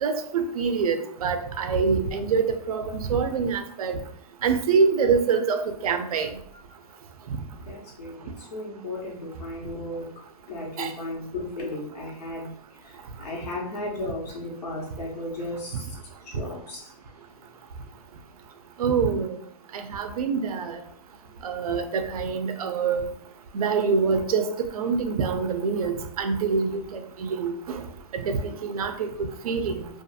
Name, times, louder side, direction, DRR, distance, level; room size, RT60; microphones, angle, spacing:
voice 1, 0.0-4.0 4.4-6.3 7.3-7.4 10.8-10.9 18.8-19.4 19.7-20.8 21.4-23.1 23.5-27.8 28.1-29.9, right 5 dB, 65° right, 7 dB, 0.4 m, -25 dB
voice 2, 7.7-10.1 10.5-12.5 12.8-15.9 16.3-16.9, left 1 dB, 80° left, -2 dB, 1.2 m, -35 dB
2.6 x 2.4 x 2.4 m, 0.63 s
hypercardioid pair, 175°, 20 cm